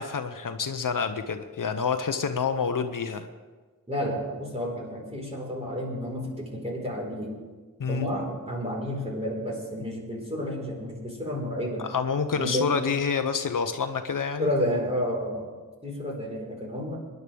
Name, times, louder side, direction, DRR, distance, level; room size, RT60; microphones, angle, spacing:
voice 1, 0.0-3.3 7.8-8.1 11.9-14.5, left 5 dB, 65° left, 8 dB, 0.8 m, -28 dB
voice 2, 3.9-7.4 7.9-11.9 12.3-12.7 14.4-15.5 15.8-17.0, equal, 20° right, -2 dB, 4.4 m, -31 dB
24.5 x 11.0 x 3.5 m, 1.4 s
wide cardioid pair, 90°, 34 cm